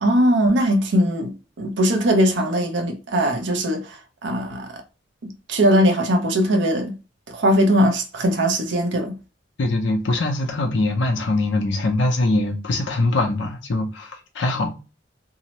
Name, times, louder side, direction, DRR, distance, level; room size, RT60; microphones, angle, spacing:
voice 1, 0.0-4.7 5.2-7.0 7.3-9.2, equal, 75° right, 0.6 m, -20 dB
voice 2, 9.6-14.8, left 2 dB, 80° left, 0.6 m, -22 dB
2.8 x 2.0 x 2.8 m
head